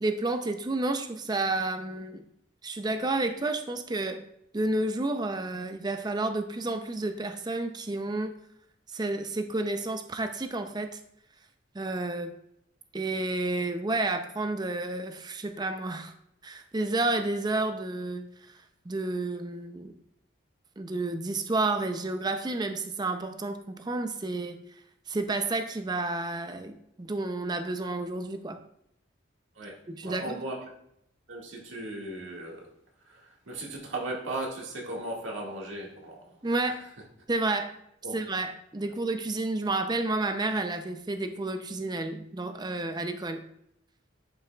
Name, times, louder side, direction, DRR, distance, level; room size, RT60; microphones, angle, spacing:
voice 1, 0.0-2.2 2.6-4.3 4.5-8.4 8.9-11.0 11.7-12.3 12.9-16.1 16.4-18.6 18.9-19.9 20.8-24.6 25.1-28.6 29.9-30.4 36.4-36.8 37.3-37.7 38.1-43.4, right 2 dB, 20° right, 7 dB, 0.5 m, -30 dB
voice 2, 29.6-30.7 31.3-32.7 33.0-36.7 38.0-38.2, right 2 dB, 75° right, -2 dB, 1.8 m, -37 dB
11.0 x 5.6 x 2.3 m, 0.74 s
head